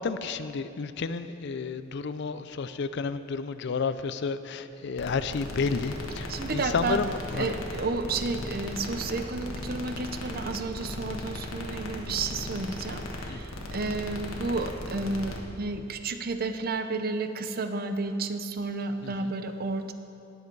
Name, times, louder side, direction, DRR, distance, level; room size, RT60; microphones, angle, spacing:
voice 1, 0.0-7.5 13.3-13.4 19.0-19.3, left 5 dB, 55° left, 12 dB, 0.4 m, -31 dB
sound 1, 5.0-15.4, left 1 dB, 80° left, 1.4 m, -37 dB
voice 2, 6.3-7.0 7.4-19.9, right 3 dB, 50° right, 8 dB, 0.7 m, -31 dB
18.5 x 7.7 x 4.6 m, 2.6 s
head